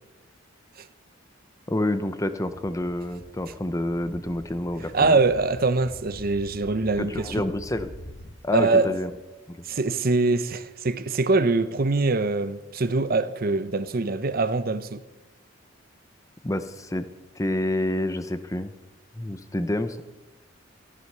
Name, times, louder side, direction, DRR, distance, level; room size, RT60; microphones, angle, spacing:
voice 1, 1.7-5.2 7.0-7.9 8.4-9.1 9.5-9.6 16.4-17.0 17.4-18.7 19.2-20.0, left 1 dB, 15° left, 0.7 m, -28 dB
sound 1, 2.4-8.3, equal, 65° left, 1.7 m, -45 dB
voice 2, 4.9-7.4 8.5-9.0 9.7-15.0, right 3 dB, 45° right, 0.7 m, -23 dB
14.0 x 11.0 x 6.7 m
head